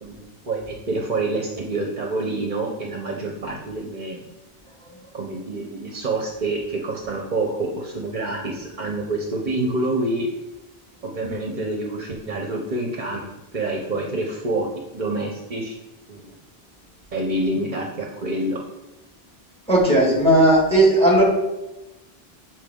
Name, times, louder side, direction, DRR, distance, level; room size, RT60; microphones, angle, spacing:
voice 1, 0.0-4.3 5.1-10.3 11.0-13.3 13.5-14.7 14.9-15.8 16.1-16.4 17.1-18.6, right 2 dB, 50° right, 1 dB, 0.9 m, -27 dB
voice 2, 19.7-21.2, right 1 dB, 5° left, -3 dB, 1.9 m, -15 dB
7.9 x 4.4 x 3.7 m, 1.0 s
omnidirectional pair, 1.0 m